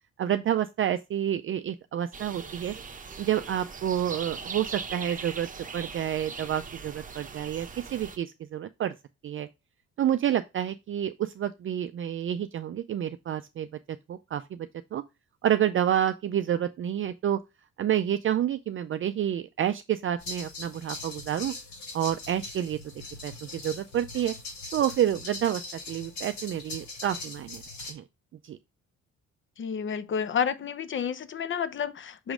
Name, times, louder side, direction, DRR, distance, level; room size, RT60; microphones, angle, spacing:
voice 1, 0.2-2.7 3.2-5.5 5.7-8.9 9.2-9.5 10.0-13.7 14.1-15.0 15.4-17.4 17.8-21.5 21.9-22.8 23.2-24.3 24.7-25.6 25.9-27.6 27.9-28.0 28.4-28.6, right 10 dB, 45° right, 0.4 m, -29 dB
sound 1, 2.1-8.2, right 5 dB, 25° right, 0.9 m, -40 dB
sound 2, 20.2-27.9, left 2 dB, 65° left, 3.9 m, -41 dB
voice 2, 29.6-32.3, left 7 dB, 40° left, 0.7 m, -30 dB
6.2 x 3.1 x 4.9 m
cardioid pair, 90°, 30 cm